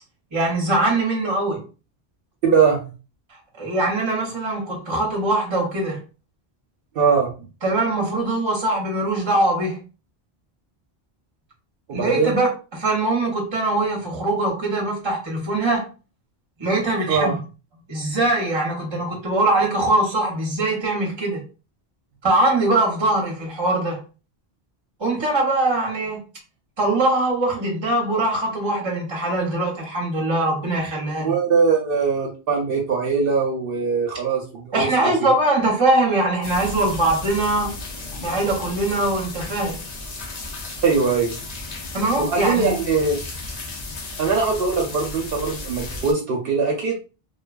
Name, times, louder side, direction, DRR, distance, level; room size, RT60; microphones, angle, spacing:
voice 1, 0.3-1.6 3.6-6.0 7.6-9.8 11.9-15.9 16.6-17.4 17.9-21.4 22.2-24.0 25.0-26.2 26.8-31.3 34.7-37.7 38.2-39.8 41.9-42.7, right 2 dB, 30° right, 0.8 m, -22 dB
voice 2, 2.4-2.9 6.9-7.3 11.9-12.4 17.1-17.4 31.2-35.1 40.8-41.4 42.2-43.2 44.2-47.0, right 5 dB, 70° right, 0.7 m, -21 dB
sound 1, 36.4-46.1, left 2 dB, 50° left, 0.6 m, -34 dB
2.5 x 2.3 x 2.3 m
omnidirectional pair, 1.1 m